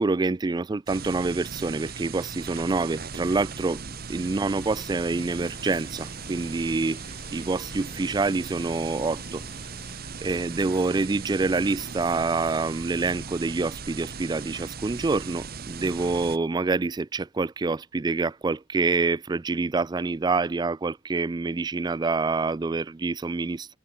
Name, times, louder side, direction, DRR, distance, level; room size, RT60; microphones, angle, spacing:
voice 1, 0.0-3.8 4.1-9.4 10.2-23.8, right 3 dB, 20° right, 0.3 m, -27 dB
sound 1, 0.9-16.4, right 5 dB, 50° right, 1.2 m, -38 dB
sound 2, 4.5-10.0, left 2 dB, 30° left, 3.2 m, -49 dB
head